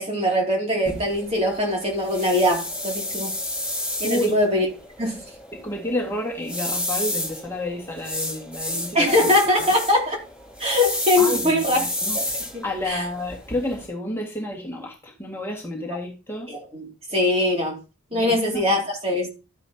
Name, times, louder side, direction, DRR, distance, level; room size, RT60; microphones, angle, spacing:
voice 1, 0.0-3.3 4.0-4.7 5.0-5.2 8.9-10.2 10.6-11.9 12.1-13.1 16.5-17.8 18.1-19.3, left 1 dB, 30° right, 2.7 m, -22 dB
sound 1, 0.9-13.9, left 1 dB, 5° right, 3.9 m, -31 dB
voice 2, 4.0-4.4 5.5-9.3 11.2-12.2 12.6-16.5 18.1-18.6, left 1 dB, 10° left, 1.9 m, -30 dB
12.5 x 9.7 x 2.9 m
head